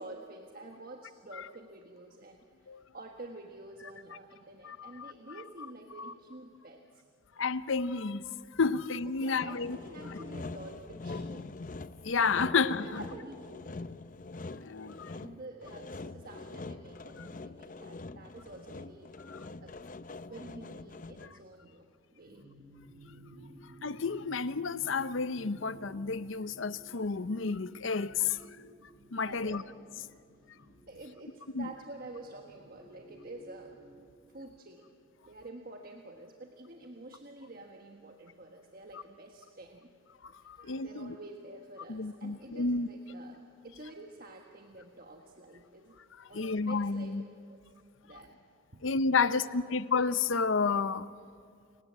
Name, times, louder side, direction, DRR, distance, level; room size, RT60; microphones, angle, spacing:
voice 1, 0.0-7.1 9.0-11.5 12.8-13.7 15.1-19.8 20.2-22.5 29.2-29.6 30.9-33.8 34.3-34.9 35.3-39.9 40.4-46.0 46.3-47.2 47.5-47.6 48.0-48.4 48.7-49.7, right 2 dB, 45° right, 1.4 m, -49 dB
voice 2, 4.6-5.1 6.0-6.1 7.4-8.3 8.5-9.8 12.0-13.0 14.6-15.1 19.3-19.4 23.8-28.4 29.1-29.6 31.5-31.7 40.2-41.2 41.9-42.9 46.3-47.2 48.8-51.1, left 4 dB, 75° left, 0.7 m, -31 dB
Sawing, 9.4-21.5, left 3 dB, 40° left, 0.6 m, -44 dB
sound 1, 22.3-34.0, right 1 dB, 70° right, 7.4 m, -55 dB
29.5 x 19.0 x 7.5 m
head